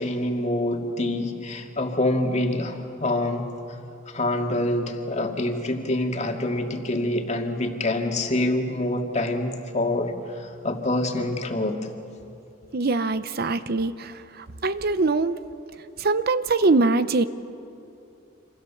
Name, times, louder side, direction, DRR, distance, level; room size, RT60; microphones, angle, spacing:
voice 1, 0.0-3.8 4.1-11.8, left 1 dB, 35° left, 3 dB, 2.3 m, -26 dB
voice 2, 12.7-14.1 14.6-15.4 16.0-17.2, right 3 dB, 50° right, 13 dB, 0.7 m, -22 dB
26.5 x 26.5 x 7.1 m, 2.7 s
head